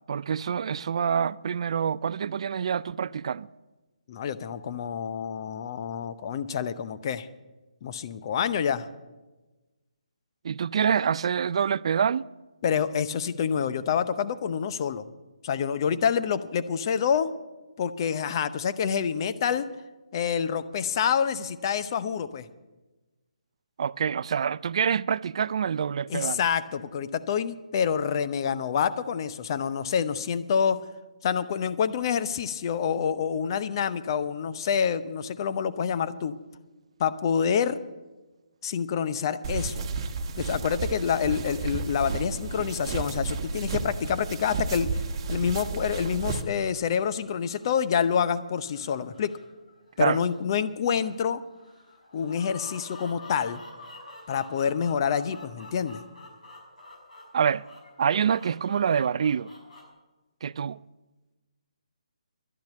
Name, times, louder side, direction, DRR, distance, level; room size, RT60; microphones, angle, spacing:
voice 1, 0.1-3.5 10.4-12.2 23.8-26.4 50.0-50.2 57.3-57.7 58.0-59.5 60.4-60.8, right 7 dB, 50° right, 0.3 m, -26 dB
voice 2, 4.1-7.3 7.8-8.9 12.6-15.0 15.4-17.3 17.8-19.7 20.1-22.5 26.1-30.8 31.2-36.3 37.0-37.8 38.6-39.9 40.3-44.9 45.3-49.3 50.0-51.4 52.1-53.6 54.3-56.0, left 7 dB, 35° left, 0.7 m, -27 dB
sound 1, 39.4-46.4, right 4 dB, 35° right, 1.2 m, -32 dB
sound 2, 46.1-59.8, left 2 dB, 85° left, 5.9 m, -49 dB
12.0 x 10.5 x 8.4 m
figure-of-eight pair, 155°, 4 cm